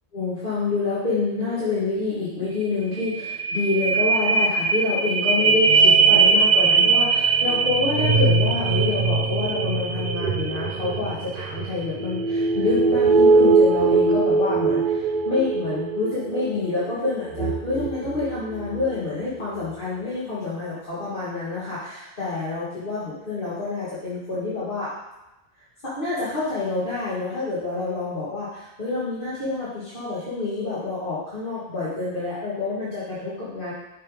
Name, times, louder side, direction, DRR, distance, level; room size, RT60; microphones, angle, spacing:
voice 1, 0.1-24.9 25.8-33.7, left 3 dB, 55° left, -11 dB, 1.9 m, -27 dB
sound 1, 2.6-2.7 3.0-18.9 19.4-19.5, right 4 dB, 60° right, 0.7 m, -21 dB
7.2 x 3.6 x 4.8 m, 0.99 s
omnidirectional pair, 1.0 m